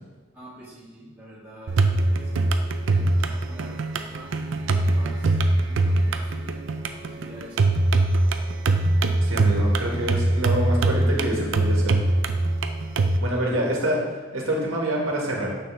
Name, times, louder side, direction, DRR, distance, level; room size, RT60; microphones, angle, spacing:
voice 1, 0.3-2.5 2.8-6.6 7.1-7.7 13.2-13.7, equal, 10° right, -10 dB, 1.7 m, -46 dB
sound 1, 1.7-13.2, right 2 dB, 65° right, 0.5 m, -22 dB
voice 2, 9.2-12.0 13.2-14.0 14.3-15.5, right 1 dB, 85° right, -1 dB, 1.6 m, -26 dB
6.9 x 6.0 x 3.4 m, 1.3 s
head